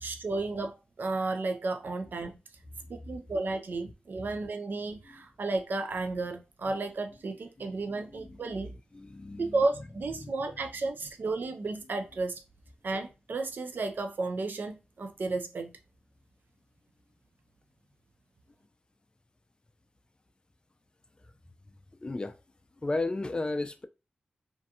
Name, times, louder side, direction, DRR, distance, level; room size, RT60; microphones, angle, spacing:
voice 1, 0.0-2.4 2.9-8.7 9.4-12.4 12.8-15.7, right 3 dB, 60° right, 0.4 m, -33 dB
voice 2, 8.1-8.5 8.9-9.8 10.2-10.7 22.0-22.4 22.8-23.9, left 2 dB, 25° left, 0.4 m, -35 dB
2.5 x 2.2 x 2.7 m
wide cardioid pair, 70°, 4 cm